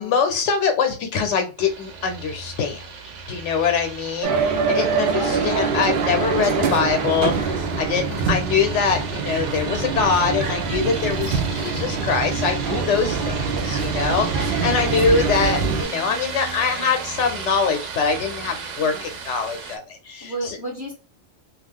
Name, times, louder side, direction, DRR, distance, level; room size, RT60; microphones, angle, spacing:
voice 1, 0.0-2.8 3.3-20.6, left 5 dB, 75° left, 6 dB, 0.9 m, -23 dB
sound 1, 1.6-19.8, right 5 dB, 75° right, 1.0 m, -34 dB
sound 2, 4.2-15.8, right 5 dB, 55° right, 0.6 m, -24 dB
voice 2, 5.1-5.7 13.1-13.4 18.8-19.1 20.2-20.9, right 1 dB, 20° right, -3 dB, 0.9 m, -33 dB
2.3 x 2.3 x 3.5 m, 0.33 s
omnidirectional pair, 1.3 m